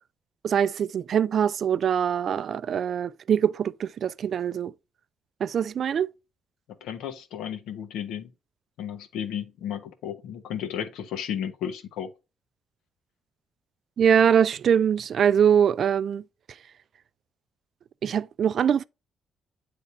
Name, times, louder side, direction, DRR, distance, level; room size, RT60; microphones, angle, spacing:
voice 1, 0.4-4.7 5.4-6.1 14.0-16.2 18.0-18.8, right 8 dB, 60° right, 0.3 m, -23 dB
voice 2, 6.8-8.3 8.8-12.1, left 9 dB, 90° left, 1.0 m, -33 dB
8.1 x 3.4 x 4.1 m
cardioid pair, 90°, 0 cm